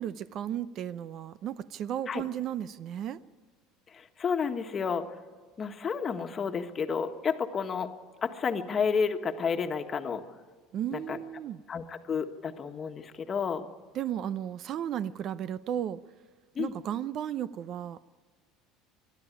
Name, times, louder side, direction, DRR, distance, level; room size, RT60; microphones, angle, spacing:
voice 1, 0.0-3.2 10.7-11.6 13.9-16.0 16.6-18.0, right 10 dB, 50° right, 16 dB, 0.6 m, -34 dB
voice 2, 3.9-5.0 5.6-7.9 8.2-10.2 10.9-11.2 11.7-13.7 16.5-16.7, left 6 dB, 30° left, 7 dB, 1.4 m, -31 dB
21.5 x 12.5 x 9.8 m, 1.5 s
supercardioid pair, 110°, 0 cm